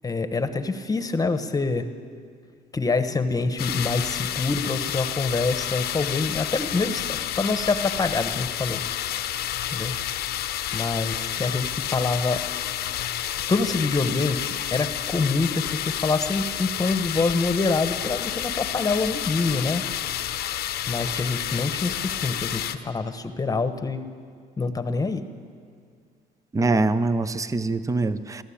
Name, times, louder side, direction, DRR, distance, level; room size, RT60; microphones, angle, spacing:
voice 1, 0.0-1.9 2.7-8.8 9.7-9.9 10.7-12.4 13.5-19.8 20.9-24.0 24.6-25.2, left 3 dB, 20° left, 9 dB, 1.2 m, -26 dB
sound 1, 3.6-22.7, left 11 dB, 70° left, 1.0 m, -30 dB
voice 2, 26.5-28.4, right 3 dB, 20° right, 13 dB, 0.8 m, -23 dB
22.5 x 15.0 x 8.8 m, 2.2 s
cardioid pair, 110°, 17 cm